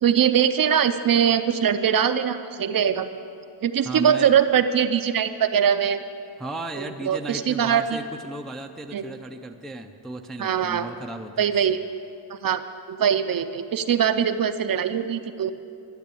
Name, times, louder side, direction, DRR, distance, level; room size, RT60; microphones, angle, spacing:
voice 1, 0.0-3.1 3.6-6.0 6.8-8.0 8.9-9.0 10.4-10.9 11.4-11.8 12.3-15.5, right 8 dB, 45° right, 10 dB, 0.6 m, -22 dB
voice 2, 3.8-4.4 6.4-11.8, right 1 dB, ahead, 4 dB, 0.4 m, -35 dB
12.5 x 10.5 x 8.4 m, 2.6 s
wide cardioid pair, 165°, 49 cm